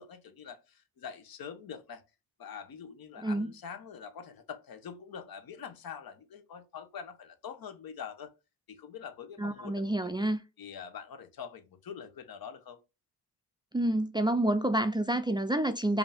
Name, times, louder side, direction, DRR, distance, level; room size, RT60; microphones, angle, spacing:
voice 1, 0.0-2.0 2.4-8.3 8.7-10.2 10.6-12.8, left 7 dB, 65° left, 1.0 m, -45 dB
voice 2, 9.4-10.4 13.7-16.0, right 1 dB, 15° right, 0.3 m, -28 dB
5.0 x 2.7 x 3.4 m
cardioid pair, 95°, 38 cm